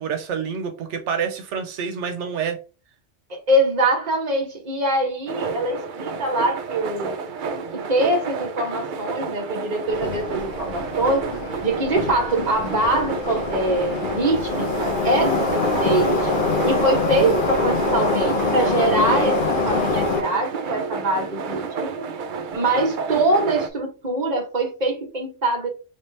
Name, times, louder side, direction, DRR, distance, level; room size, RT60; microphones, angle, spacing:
voice 1, 0.0-2.6, right 6 dB, 85° right, 1.0 m, -27 dB
voice 2, 3.3-7.1 7.7-11.3 11.6-16.3 16.6-22.1 22.5-25.7, right 1 dB, 40° right, 1.2 m, -23 dB
sound 1, 5.3-23.7, right 5 dB, 55° right, 0.6 m, -31 dB
Subway metro underground, 9.9-20.2, left 3 dB, 55° left, 0.8 m, -24 dB
3.4 x 2.8 x 3.2 m
omnidirectional pair, 1.2 m